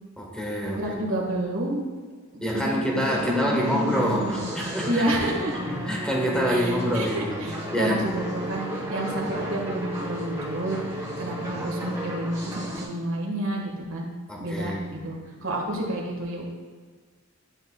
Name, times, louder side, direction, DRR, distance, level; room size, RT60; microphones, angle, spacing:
voice 1, 0.2-0.8 2.4-5.1 5.7-7.4 7.7-8.2 11.5-11.7 14.3-15.0, equal, 5° left, -2 dB, 1.2 m, -26 dB
voice 2, 0.7-1.8 2.3-4.5 4.9-5.5 6.5-14.1 14.4-16.4, right 1 dB, 85° right, -1 dB, 1.5 m, -30 dB
sound 1, 3.0-12.8, equal, 15° right, 2.0 m, -34 dB
11.0 x 5.6 x 2.2 m, 1.5 s
head